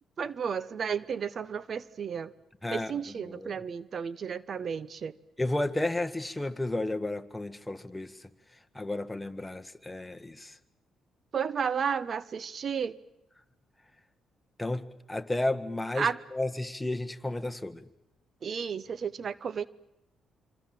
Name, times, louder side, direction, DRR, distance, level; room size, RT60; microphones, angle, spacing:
voice 1, 0.2-2.3 2.7-5.1 11.3-13.0 16.0-16.2 18.4-19.7, right 6 dB, 50° right, 0.9 m, -32 dB
voice 2, 2.6-3.6 5.4-8.1 8.7-10.5 14.6-17.9, left 2 dB, 10° left, 1.5 m, -32 dB
25.5 x 25.5 x 7.7 m
cardioid pair, 90°, 0 cm